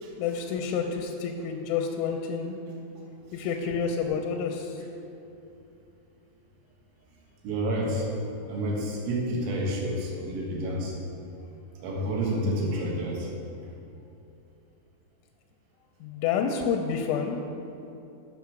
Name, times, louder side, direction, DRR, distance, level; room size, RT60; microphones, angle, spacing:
voice 1, 0.2-2.6 3.3-4.8 16.0-17.4, left 6 dB, 85° left, 3 dB, 3.1 m, -29 dB
voice 2, 7.4-8.1 8.5-11.0 11.8-13.3, right 1 dB, 80° right, -2 dB, 3.6 m, -29 dB
8.2 x 6.3 x 5.8 m, 2.8 s
omnidirectional pair, 5.6 m